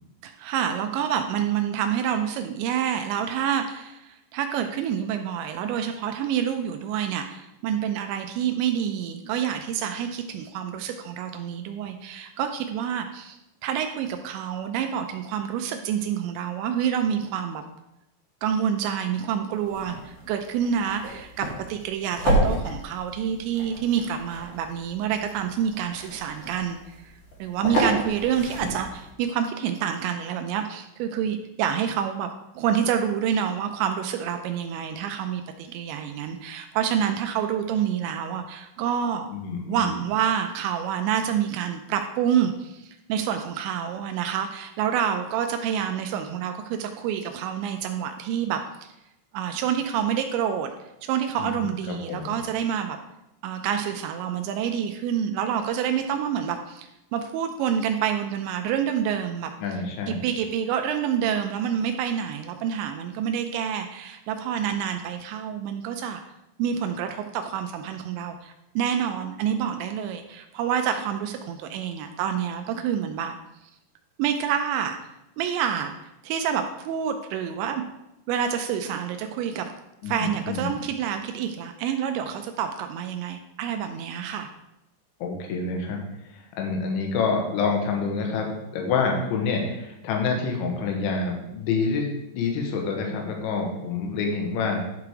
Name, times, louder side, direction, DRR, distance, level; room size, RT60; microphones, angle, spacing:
voice 1, 0.2-17.6 18.4-27.1 27.4-32.3 32.6-39.3 39.7-48.9 49.3-50.7 51.0-53.0 53.4-59.5 60.1-66.2 66.6-73.3 74.2-75.0 75.4-75.9 76.2-77.8 78.3-79.7 80.1-84.5, right 8 dB, 85° right, 6 dB, 2.6 m, -27 dB
sound 1, 19.5-29.1, right 1 dB, 35° left, 2.0 m, -31 dB
voice 2, 39.3-39.9 51.4-52.4 59.6-60.2 80.0-80.8 85.2-86.0 86.3-92.1 92.3-94.8, left 4 dB, 75° left, 1 dB, 3.6 m, -27 dB
11.5 x 5.0 x 4.7 m, 0.89 s
omnidirectional pair, 5.8 m